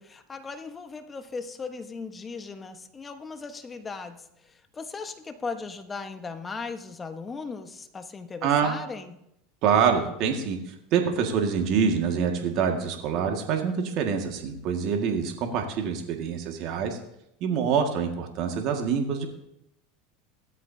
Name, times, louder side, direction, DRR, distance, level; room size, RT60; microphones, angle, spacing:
voice 1, 0.0-9.1, left 4 dB, 20° left, 8 dB, 1.3 m, -38 dB
voice 2, 8.4-8.8 9.6-17.0 17.4-19.3, right 6 dB, 55° right, 3 dB, 2.0 m, -26 dB
17.0 x 13.0 x 2.8 m, 0.81 s
hypercardioid pair, 100°, 0 cm